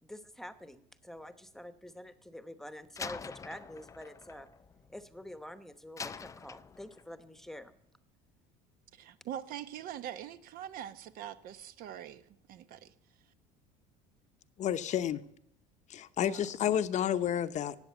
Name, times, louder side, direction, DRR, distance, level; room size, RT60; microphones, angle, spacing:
voice 1, 0.0-4.5 4.9-7.7, left 1 dB, ahead, 1.0 m, -47 dB
Slam, 3.0-5.4 6.0-7.2, left 5 dB, 20° left, 0.4 m, -45 dB
voice 2, 8.9-12.2 12.5-12.9 16.2-16.4, right 10 dB, 60° right, 0.9 m, -43 dB
voice 3, 14.6-15.2 15.9-17.8, left 10 dB, 45° left, 0.8 m, -30 dB
16.5 x 8.0 x 8.2 m
supercardioid pair, 105°, 16 cm